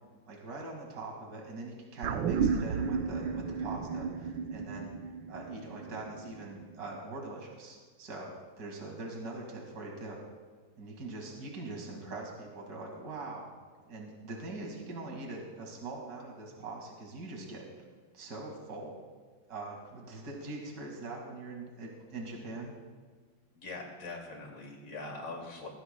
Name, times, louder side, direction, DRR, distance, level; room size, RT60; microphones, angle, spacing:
voice 1, 0.3-4.9 5.3-10.2 10.8-13.5 13.9-17.7 18.1-19.0 19.5-22.7, right 2 dB, 50° right, 0 dB, 2.6 m, -42 dB
sound 1, 2.0-6.6 6.9-7.0, right 6 dB, 70° right, 1.4 m, -33 dB
voice 2, 23.5-25.7, left 3 dB, 85° left, 0 dB, 3.4 m, -42 dB
21.0 x 16.0 x 2.3 m, 1.5 s
omnidirectional pair, 2.3 m